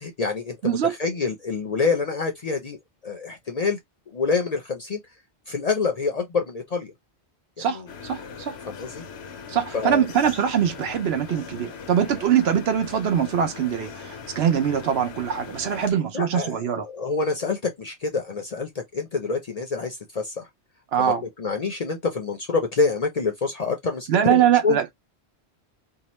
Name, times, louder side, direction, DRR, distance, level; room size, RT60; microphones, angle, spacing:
voice 1, 0.0-2.8 3.0-3.8 4.1-5.0 5.5-6.9 7.6-7.8 8.7-9.0 9.7-10.0 16.1-20.5 21.0-21.1 21.4-24.8, left 4 dB, 45° left, 0.5 m, -27 dB
voice 2, 0.6-0.9 7.6-8.6 9.5-16.9 20.9-21.2 24.1-24.9, right 9 dB, 70° right, 0.9 m, -23 dB
sound 1, 7.9-15.9, left 6 dB, 75° left, 0.9 m, -40 dB
2.8 x 2.1 x 2.9 m
omnidirectional pair, 1.1 m